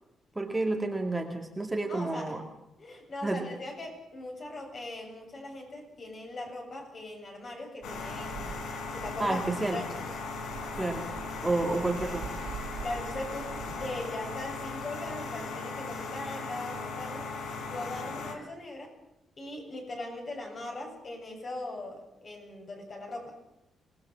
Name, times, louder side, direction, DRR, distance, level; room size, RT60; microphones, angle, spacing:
voice 1, 0.4-2.4 3.2-3.5 9.2-9.8 10.7-11.1 11.4-12.3, right 2 dB, 10° right, 1 dB, 2.2 m, -30 dB
voice 2, 1.9-2.4 2.8-8.6 8.9-9.4 9.7-10.1 12.8-17.3 17.7-18.9 19.4-23.4, left 2 dB, 40° left, 2 dB, 7.7 m, -40 dB
sound 1, 7.8-18.4, left 4 dB, 90° left, 4.1 m, -38 dB
sound 2, 7.8-15.4, right 6 dB, 70° right, 3.1 m, -46 dB
26.5 x 19.5 x 7.5 m, 0.88 s
cardioid pair, 140°, 0 cm